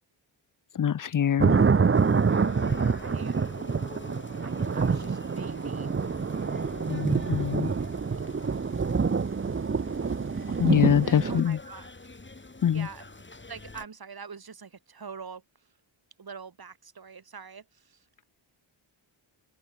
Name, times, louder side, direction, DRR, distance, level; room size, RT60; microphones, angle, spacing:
voice 1, 0.7-1.5 6.9-7.7 10.6-11.6 12.6-12.9, left 9 dB, 45° left, 0.6 m, -24 dB
sound 1, 1.4-11.4, right 5 dB, 30° right, 0.8 m, -26 dB
sound 2, 1.9-13.9, left 3 dB, 25° left, 4.0 m, -46 dB
voice 2, 3.0-3.4 4.4-5.9 11.0-11.9 12.7-13.1 13.5-15.7 16.2-18.2, right 5 dB, 50° right, 3.5 m, -44 dB
wide cardioid pair, 105°, 46 cm